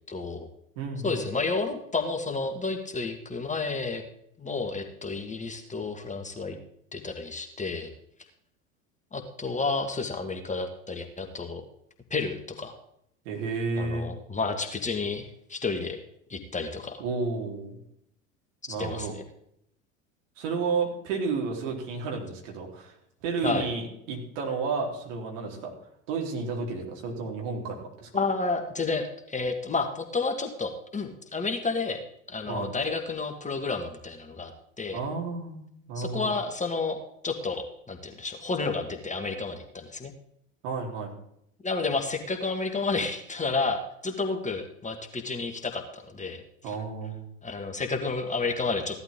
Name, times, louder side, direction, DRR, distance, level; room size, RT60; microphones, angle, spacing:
voice 1, 0.1-0.5 1.0-4.0 4.4-6.6 6.9-7.9 9.1-11.6 12.1-12.7 13.8-16.0 16.3-17.0 18.6-19.2 23.4-23.7 28.1-32.0 32.3-34.5 34.8-35.0 36.0-37.0 37.2-40.1 41.6-46.8 47.4-49.0, left 3 dB, 15° left, 4 dB, 1.8 m, -31 dB
voice 2, 0.8-1.2 13.3-14.1 17.0-17.8 18.7-19.1 20.4-22.9 23.2-25.7 26.1-28.1 32.5-32.7 34.9-35.6 35.9-36.3 40.6-41.1 46.6-47.3, right 4 dB, 60° right, 1 dB, 3.9 m, -31 dB
16.5 x 12.0 x 3.7 m, 0.74 s
figure-of-eight pair, 75°, 42 cm